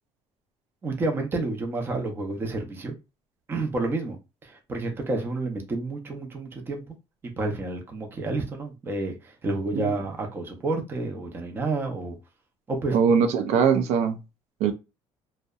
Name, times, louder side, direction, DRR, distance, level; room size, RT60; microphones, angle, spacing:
voice 1, 0.8-2.9 3.5-4.2 4.4-7.0 7.2-12.2 12.7-13.0, right 2 dB, 20° right, 0.5 m, -30 dB
voice 2, 12.9-14.2 14.6-14.7, right 6 dB, 75° right, 0.4 m, -21 dB
2.6 x 2.0 x 2.3 m
cardioid pair, 170°, 11 cm